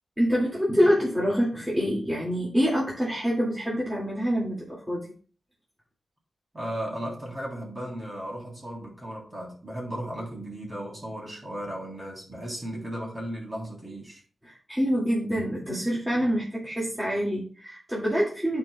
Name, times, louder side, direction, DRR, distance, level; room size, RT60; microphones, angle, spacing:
voice 1, 0.2-5.1 14.4-18.6, equal, 10° right, -6 dB, 2.2 m, -26 dB
voice 2, 6.5-14.2, right 1 dB, 30° right, -2 dB, 3.3 m, -35 dB
13.5 x 4.6 x 2.3 m, 0.42 s
wide cardioid pair, 90°, 0 cm